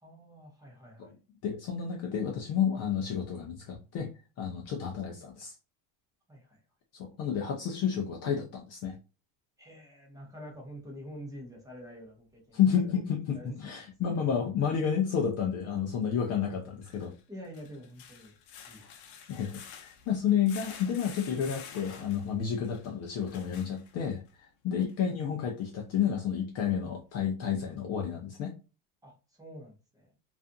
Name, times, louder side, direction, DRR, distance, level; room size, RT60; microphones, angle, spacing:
voice 1, 0.0-1.2 6.3-6.6 9.6-12.9 13.3-14.1 17.3-18.3 18.7-19.2 24.7-24.8 29.0-30.1, equal, 10° right, -1 dB, 0.7 m, -47 dB
voice 2, 1.4-4.1 4.4-5.5 6.9-9.0 12.5-17.1 18.8-18.9 19.3-24.2 24.6-28.5, left 8 dB, 40° left, 1 dB, 0.4 m, -30 dB
sound 1, 14.2-14.3 16.7-24.3 24.9-25.0 25.4-25.5, left 7 dB, 85° left, 0.8 m, -49 dB
2.5 x 2.4 x 2.6 m, 0.32 s
cardioid pair, 150°, 43 cm